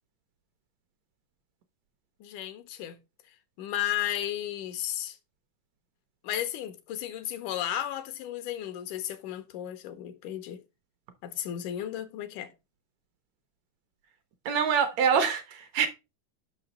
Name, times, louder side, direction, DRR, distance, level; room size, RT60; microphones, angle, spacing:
voice 1, 2.2-3.0 3.6-5.2 6.2-10.6 11.2-12.5, left 11 dB, 85° left, 2.3 m, -34 dB
voice 2, 14.5-15.9, right 7 dB, 70° right, 1.9 m, -25 dB
5.9 x 5.9 x 4.1 m
omnidirectional pair, 3.6 m